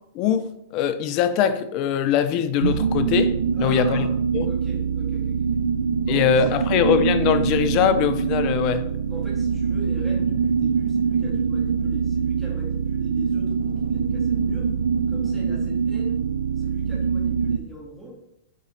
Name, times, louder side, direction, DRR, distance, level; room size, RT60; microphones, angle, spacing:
voice 1, 0.1-0.5 0.7-3.3 3.6-4.0 4.3-4.5 6.1-8.8, left 8 dB, 45° left, 0.5 m, -21 dB
sound 1, 2.6-17.6, right 6 dB, 90° right, 0.4 m, -24 dB
voice 2, 3.5-4.1 4.4-5.6 6.0-6.9 9.1-14.7 15.1-16.2 16.6-18.2, right 1 dB, 5° right, 1.9 m, -41 dB
7.5 x 4.1 x 3.8 m
hypercardioid pair, 130°, 0 cm